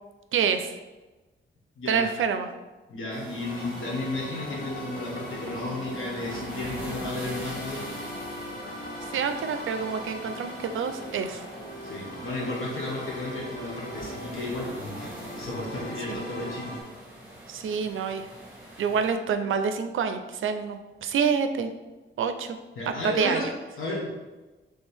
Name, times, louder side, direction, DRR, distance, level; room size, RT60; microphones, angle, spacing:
voice 1, 0.3-0.7 1.9-2.5 9.1-11.4 16.1-16.2 17.5-18.3 18.8-21.7 22.2-22.6 23.0-23.5, right 6 dB, 75° right, 8 dB, 0.4 m, -27 dB
voice 2, 2.9-7.8 11.8-15.1 15.4-16.7 22.8-23.5 23.8-24.1, left 2 dB, 80° left, -4 dB, 1.2 m, -33 dB
sound 1, 3.1-19.1, right 1 dB, 5° right, 1.1 m, -44 dB
sound 2, 3.4-16.8, equal, 40° left, 0.9 m, -39 dB
4.4 x 3.2 x 3.4 m, 1.2 s
wide cardioid pair, 180°, 21 cm